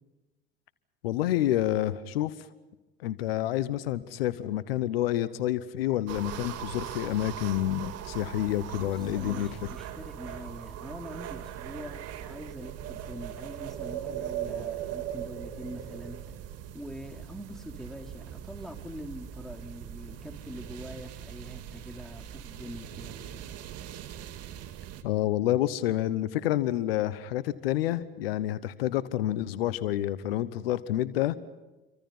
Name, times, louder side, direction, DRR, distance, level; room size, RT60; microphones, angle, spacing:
voice 1, 1.0-2.3 3.0-9.5 25.0-31.3, left 13 dB, 80° left, 16 dB, 1.0 m, -28 dB
sound 1, 6.1-25.0, right 10 dB, 60° right, 2.2 m, -40 dB
voice 2, 8.8-16.2 16.7-23.3, equal, ahead, 4 dB, 3.5 m, -44 dB
28.5 x 24.5 x 5.6 m, 1.1 s
hypercardioid pair, 60°, 29 cm